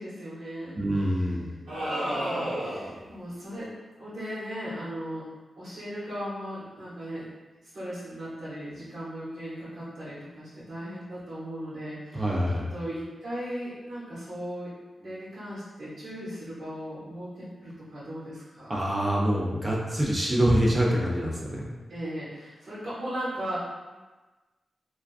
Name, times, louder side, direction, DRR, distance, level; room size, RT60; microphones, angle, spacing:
voice 1, 0.0-1.3 2.2-3.7 4.0-5.2 5.6-7.2 7.7-12.4 12.7-14.7 15.0-18.9 21.9-23.6, equal, 70° right, -13 dB, 1.1 m, -37 dB
voice 2, 0.8-1.5 12.1-12.7 18.7-21.7, equal, 20° right, -3 dB, 0.4 m, -25 dB
sound 1, 1.7-3.0, equal, 90° right, 0.9 m, -30 dB
2.4 x 2.3 x 2.3 m, 1.2 s
cardioid pair, 85°, 0 cm